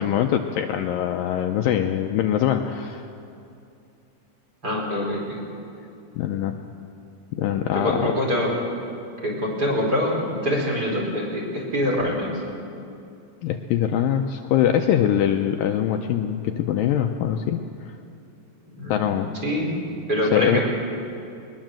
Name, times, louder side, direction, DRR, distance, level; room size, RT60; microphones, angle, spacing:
voice 1, 0.0-3.1 6.2-6.6 7.3-8.1 13.4-18.0 18.9-19.3 20.2-20.6, left 10 dB, 75° left, 5 dB, 2.2 m, -23 dB
voice 2, 4.6-5.4 7.7-8.5 9.2-10.2 10.4-12.3 18.8-19.7 20.1-20.6, left 1 dB, 25° right, -2 dB, 4.4 m, -24 dB
21.0 x 21.0 x 7.7 m, 2.6 s
omnidirectional pair, 4.5 m